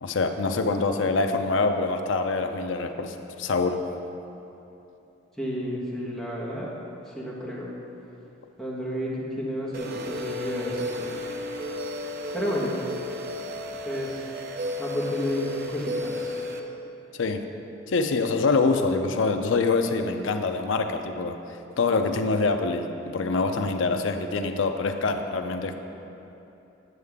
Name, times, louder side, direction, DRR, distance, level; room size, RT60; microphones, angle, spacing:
voice 1, 0.0-3.8 17.1-17.5 17.9-21.4 21.8-25.8, left 3 dB, 75° left, 6 dB, 0.5 m, -25 dB
voice 2, 5.4-6.7 7.1-7.7 8.6-11.1 12.3-12.7 13.8-14.2 14.8-16.4, equal, ahead, -7 dB, 1.3 m, -31 dB
sound 1, 9.7-16.6, left 1 dB, 50° right, 0.5 m, -33 dB
9.4 x 6.5 x 3.6 m, 3.0 s
head